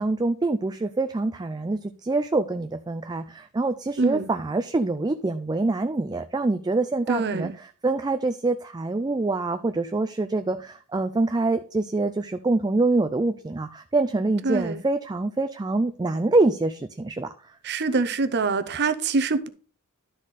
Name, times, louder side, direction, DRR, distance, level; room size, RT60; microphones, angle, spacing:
voice 1, 0.0-17.3, right 2 dB, 20° right, 0.4 m, -25 dB
voice 2, 7.1-7.5 14.4-14.8 17.6-19.5, right 4 dB, 50° right, 0.7 m, -24 dB
12.0 x 4.2 x 4.9 m
head